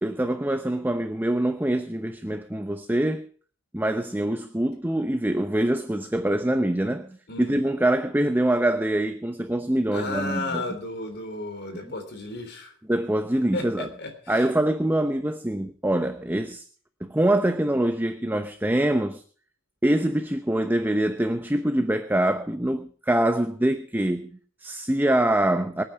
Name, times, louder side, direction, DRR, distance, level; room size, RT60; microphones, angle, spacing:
voice 1, 0.0-3.2 3.7-10.6 12.9-13.9 14.3-16.6 17.0-19.2 19.8-25.8, right 1 dB, 10° right, 0.8 m, -24 dB
voice 2, 7.3-7.6 9.9-12.7 13.5-14.5, left 2 dB, 60° left, 3.5 m, -33 dB
24.0 x 8.9 x 4.7 m
head